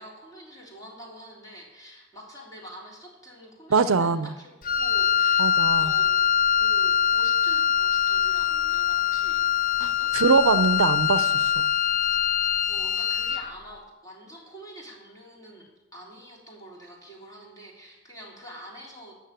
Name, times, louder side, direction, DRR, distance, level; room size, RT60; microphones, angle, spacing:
voice 1, 0.0-6.1 6.5-10.2 12.7-19.1, right 1 dB, 15° left, -2 dB, 3.5 m, -46 dB
voice 2, 3.7-4.3 5.4-5.9 9.8-11.6, right 4 dB, 75° right, 14 dB, 0.6 m, -23 dB
Wind instrument woodwind instrument, 4.6-13.5, left 9 dB, 40° left, 0.5 m, -23 dB
13.5 x 6.4 x 9.2 m, 1.0 s
head